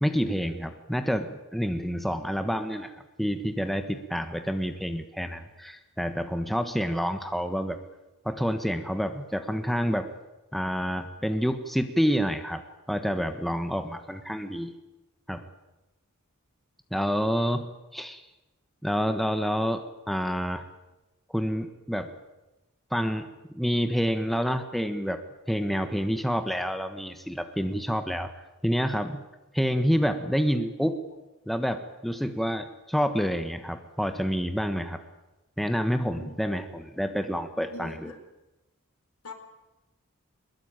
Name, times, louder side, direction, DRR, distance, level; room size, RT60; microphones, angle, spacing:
voice 1, 0.0-7.8 8.2-10.1 10.5-12.6 12.9-14.7 15.3-15.4 16.9-18.2 18.8-20.6 21.3-22.1 22.9-25.2 25.5-28.3 28.6-29.2 29.5-31.0 31.5-35.0 35.6-38.1, equal, ahead, 7 dB, 1.3 m, -28 dB
voice 2, 37.7-38.2 39.2-39.3, left 2 dB, 80° left, 6 dB, 4.6 m, -43 dB
23.0 x 21.0 x 9.1 m, 1.0 s
head